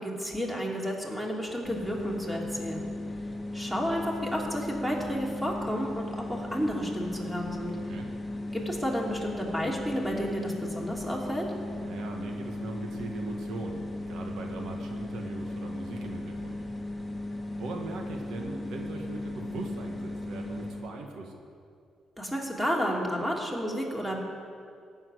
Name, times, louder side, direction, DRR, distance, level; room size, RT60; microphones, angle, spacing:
voice 1, 0.0-2.8 3.5-7.8 8.5-11.5 22.2-24.2, equal, 5° right, -2 dB, 2.8 m, -31 dB
sound 1, 1.6-20.9, left 1 dB, 15° left, 1.7 m, -37 dB
voice 2, 11.6-16.6 17.6-21.3, right 3 dB, 80° right, 2 dB, 1.6 m, -40 dB
14.5 x 7.3 x 9.7 m, 2.3 s
cardioid pair, 90°, 0 cm